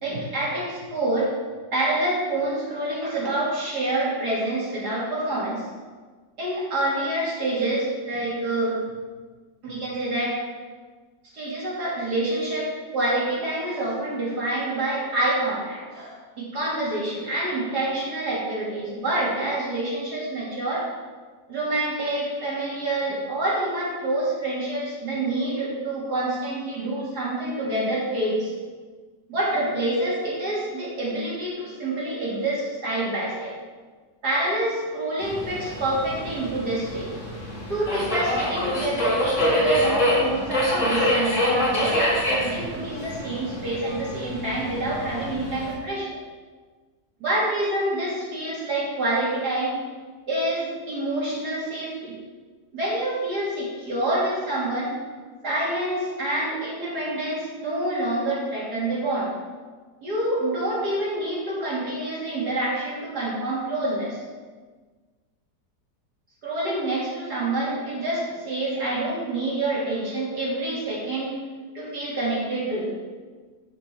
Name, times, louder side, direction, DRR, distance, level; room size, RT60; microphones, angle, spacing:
voice 1, 0.0-1.3 1.7-5.6 6.4-8.8 9.6-10.4 11.3-20.8 21.5-28.5 29.3-33.5 34.2-37.1 37.7-46.2 47.2-49.8 50.3-52.2 52.7-54.9 55.4-59.3 60.0-64.2 66.4-71.3 71.7-72.9, right 1 dB, 65° right, -6 dB, 3.3 m, -27 dB
Subway metro underground, 35.2-45.7, left 1 dB, 45° left, 2.2 m, -26 dB
10.5 x 5.9 x 4.7 m, 1.4 s
omnidirectional pair, 1.9 m